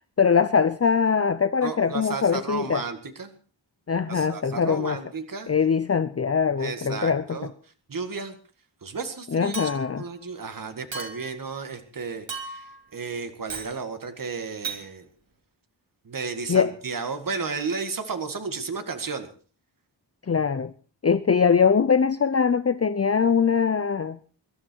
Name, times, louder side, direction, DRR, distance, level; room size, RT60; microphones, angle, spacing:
voice 1, 0.2-2.8 3.9-5.0 5.5-7.4 9.3-10.0 16.5-16.7 20.3-20.7 21.0-24.2, left 6 dB, 35° left, 12 dB, 0.7 m, -22 dB
voice 2, 1.6-3.3 4.1-5.5 6.6-7.5 7.9-8.4 8.8-9.6 10.0-15.1 16.1-19.3, right 4 dB, 45° right, 8 dB, 2.0 m, -33 dB
Chink clink, 9.5-10.0 10.9-11.4 12.3-12.8 13.5-13.8 14.6-14.8, right 4 dB, 85° right, 3.6 m, -35 dB
23.5 x 12.5 x 4.6 m, 0.41 s
wide cardioid pair, 115°, 44 cm